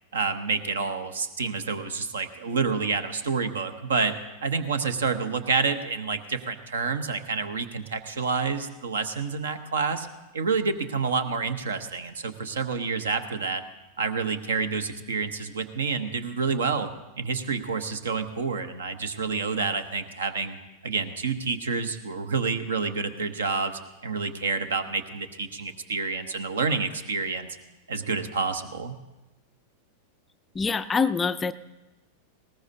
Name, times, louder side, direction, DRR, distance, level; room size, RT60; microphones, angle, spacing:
voice 1, 0.1-4.1 4.4-10.1 10.3-13.6 14.0-16.9 17.2-20.6 20.8-27.5 27.9-29.0, right 5 dB, 65° right, 11 dB, 1.0 m, -28 dB
voice 2, 30.5-31.5, left 5 dB, 15° left, 12 dB, 0.4 m, -25 dB
20.0 x 18.0 x 2.7 m, 1.0 s
figure-of-eight pair, 90°, 0 cm